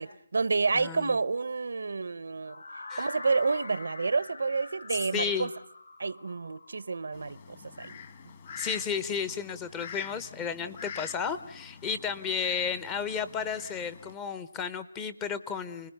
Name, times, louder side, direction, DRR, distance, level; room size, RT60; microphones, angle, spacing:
voice 1, 0.0-2.6 3.0-5.5 6.0-7.4 7.8-8.0, right 4 dB, 75° right, 0.9 m, -29 dB
voice 2, 0.7-1.2 2.9-3.1 5.1-5.5 8.6-15.9, left 6 dB, 15° left, 0.9 m, -33 dB
sound 1, 2.4-8.4, left 3 dB, 85° left, 1.5 m, -45 dB
Fowl, 7.1-14.1, left 6 dB, 35° left, 1.9 m, -46 dB
30.0 x 20.0 x 6.7 m
hypercardioid pair, 165°, 0 cm